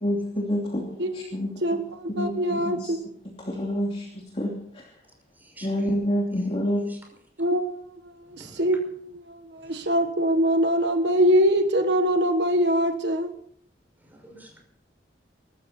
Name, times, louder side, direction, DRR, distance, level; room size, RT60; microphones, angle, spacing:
voice 1, 0.0-1.8 2.1-2.9 3.4-4.9 5.6-6.8, equal, 35° left, 2.8 m, -28 dB
voice 2, 1.0-3.0 7.4-13.3, equal, 70° right, 1.5 m, -24 dB
voice 3, 5.4-5.9 6.3-6.4 6.9-7.0 8.2-8.6 9.6-9.9 14.0-14.6, right 1 dB, 10° right, 6.0 m, -49 dB
24.5 x 13.0 x 4.4 m
head